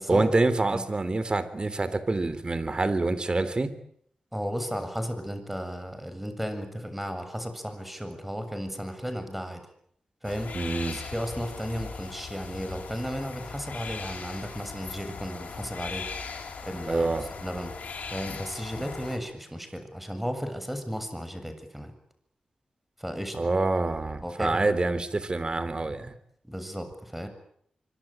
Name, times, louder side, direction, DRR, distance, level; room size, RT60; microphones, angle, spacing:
voice 1, 0.1-3.7 10.5-11.0 16.9-17.2 23.3-26.2, right 3 dB, 40° right, 14 dB, 3.5 m, -26 dB
voice 2, 4.3-9.6 10.2-10.5 10.9-17.1 17.4-17.7 18.1-21.9 23.0-23.5 24.2-24.8 26.4-27.3, equal, 5° right, 8 dB, 7.4 m, -34 dB
sound 1, 10.2-19.2, left 5 dB, 85° left, 7.8 m, -39 dB
25.0 x 24.5 x 9.0 m, 0.67 s
cardioid pair, 70°, 2 cm